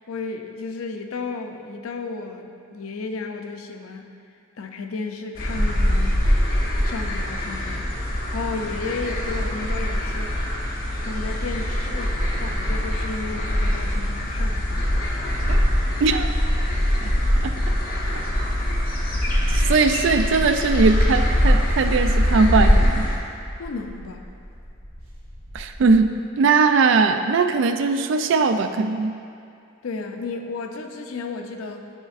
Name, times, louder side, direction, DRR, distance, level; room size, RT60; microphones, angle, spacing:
voice 1, 0.0-4.1 4.6-6.2 6.8-10.3 11.0-14.9 23.6-24.3 29.8-31.9, left 3 dB, 85° left, 5 dB, 0.5 m, -33 dB
sound 1, 5.3-23.2, equal, 45° left, 0.9 m, -22 dB
voice 2, 16.0-16.3 17.0-17.1 17.4-17.5 19.5-23.1 25.5-29.1, right 4 dB, 60° right, 8 dB, 0.3 m, -20 dB
sound 2, 19.7-26.2, equal, 85° right, 1.2 m, -40 dB
9.8 x 4.3 x 2.4 m, 2.5 s
head